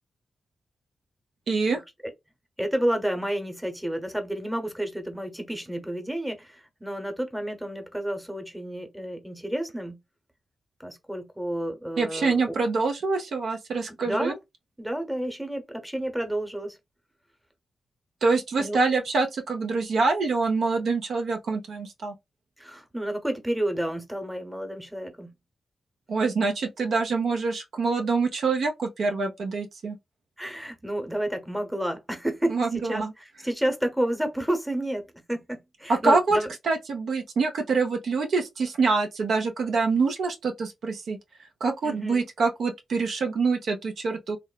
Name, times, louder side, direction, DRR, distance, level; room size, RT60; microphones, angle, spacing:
voice 1, 1.5-1.8 12.0-14.3 18.2-22.1 26.1-30.0 32.5-33.1 35.9-36.4 36.6-41.2 41.6-44.4, right 4 dB, 75° right, 0.5 m, -25 dB
voice 2, 2.6-10.0 10.8-12.4 14.0-14.4 14.8-16.8 18.6-18.8 22.6-25.3 30.4-36.5 41.8-42.2, right 1 dB, 5° right, 0.8 m, -30 dB
3.0 x 2.0 x 2.2 m
cardioid pair, 55°, 0 cm